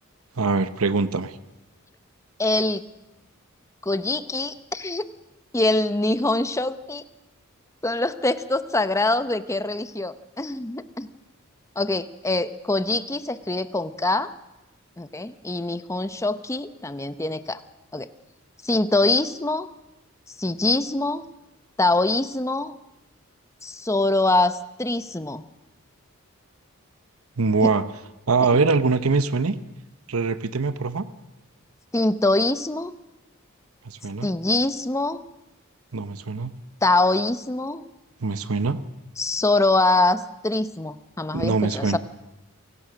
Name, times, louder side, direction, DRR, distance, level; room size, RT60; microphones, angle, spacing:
voice 1, 0.4-1.3 27.4-27.8 28.3-29.5 30.1-31.0 33.8-34.3 35.9-36.5 38.2-38.8 41.3-42.0, right 4 dB, 85° right, 12 dB, 0.9 m, -23 dB
voice 2, 2.4-2.8 3.8-5.1 5.5-7.0 7.8-11.1 11.8-14.3 15.0-17.6 17.9-18.1 18.6-19.7 20.3-21.2 21.8-22.7 23.6-25.4 27.6-27.7 28.5-28.6 31.9-32.9 34.2-35.2 36.8-37.8 39.2-42.0, left 2 dB, 15° left, 12 dB, 0.7 m, -24 dB
28.5 x 17.0 x 6.3 m, 1.0 s
head